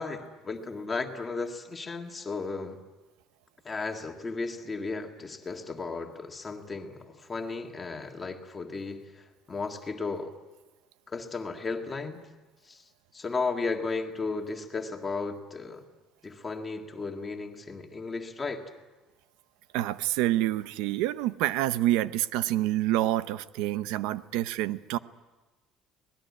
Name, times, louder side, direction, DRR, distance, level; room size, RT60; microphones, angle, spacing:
voice 1, 0.0-2.8 3.7-9.0 9.5-10.3 11.1-12.2 12.7-12.8 13.1-15.8 16.2-18.6, left 4 dB, 15° left, 4 dB, 1.8 m, -34 dB
voice 2, 19.7-25.0, right 14 dB, 85° right, 14 dB, 0.7 m, -27 dB
25.5 x 19.5 x 9.6 m, 1.2 s
cardioid pair, 175°, 0 cm